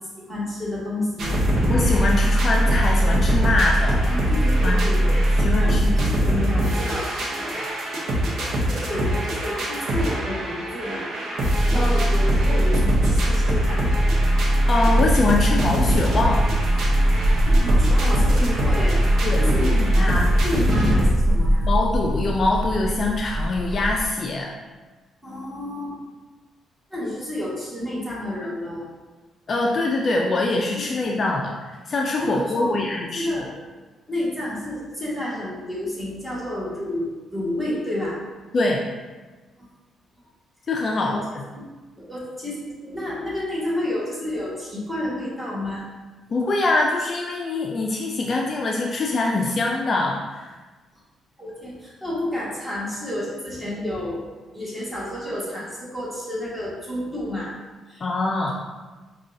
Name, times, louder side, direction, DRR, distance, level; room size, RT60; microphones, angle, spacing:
voice 1, 0.3-1.4 4.0-7.7 8.9-11.0 11.7-13.8 17.4-19.0 19.4-19.7 20.0-21.6 25.2-26.0 26.9-28.9 30.7-30.8 31.1-31.2 32.2-32.8 33.1-33.5 34.1-38.2 39.6-39.7 41.0-41.2 41.5-41.7 42.0-45.8 51.4-54.2 54.5-57.5 57.9-58.0, left 1 dB, 10° right, -7 dB, 1.4 m, -30 dB
sound 1, 1.2-21.1, right 1 dB, 65° right, 0.7 m, -20 dB
voice 2, 1.7-4.2 4.6-4.8 5.1-6.0 11.7-12.1 14.7-16.4 19.2-20.2 21.6-24.5 29.5-33.3 38.5-38.8 40.7-41.4 46.3-50.5 58.0-58.5, left 2 dB, 45° left, 0 dB, 0.3 m, -24 dB
sound 2, 14.7-24.0, equal, 40° right, 0.4 m, -24 dB
5.0 x 2.3 x 2.6 m, 1.3 s
cardioid pair, 90°, 0 cm